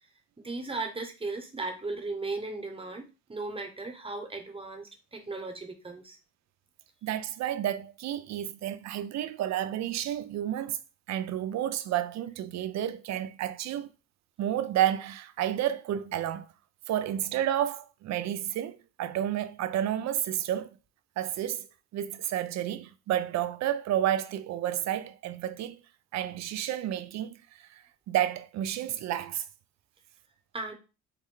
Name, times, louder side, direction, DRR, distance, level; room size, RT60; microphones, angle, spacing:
voice 1, 0.4-6.2 30.5-30.7, right 3 dB, 20° right, 0.9 m, -36 dB
voice 2, 7.0-10.8 11.1-13.9 14.4-16.5 16.9-20.8 21.2-21.7 21.9-25.8 26.1-29.5, right 11 dB, 65° right, 0.4 m, -31 dB
3.5 x 2.2 x 3.7 m
cardioid pair, 90°, 30 cm